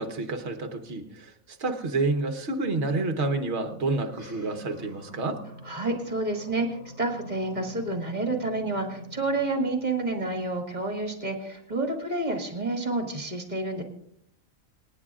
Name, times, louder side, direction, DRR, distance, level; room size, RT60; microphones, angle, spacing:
voice 1, 0.0-5.4, right 3 dB, 55° right, 6 dB, 1.4 m, -29 dB
sound 1, 4.0-10.7, equal, 90° left, 5.1 m, -46 dB
voice 2, 5.7-6.7 7.0-13.8, right 2 dB, 30° right, 2 dB, 2.3 m, -29 dB
27.5 x 9.8 x 2.4 m, 0.73 s
omnidirectional pair, 1.4 m